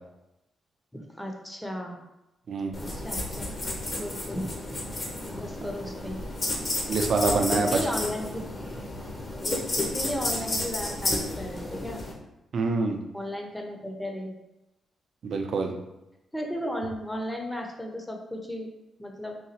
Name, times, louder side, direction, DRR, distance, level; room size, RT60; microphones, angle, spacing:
voice 1, 0.9-2.0 2.8-3.5 4.0-4.5 5.4-6.2 7.5-8.4 9.4-12.1 13.1-14.3 16.3-18.7 19.0-19.4, equal, 5° left, 2 dB, 0.6 m, -35 dB
sound 1, 2.7-12.1, left 1 dB, 40° left, 0.8 m, -32 dB
voice 2, 6.9-7.8 12.5-13.0 15.2-15.7, right 3 dB, 60° right, 3 dB, 0.4 m, -25 dB
4.0 x 2.3 x 2.8 m, 0.92 s
cardioid pair, 95°, 0 cm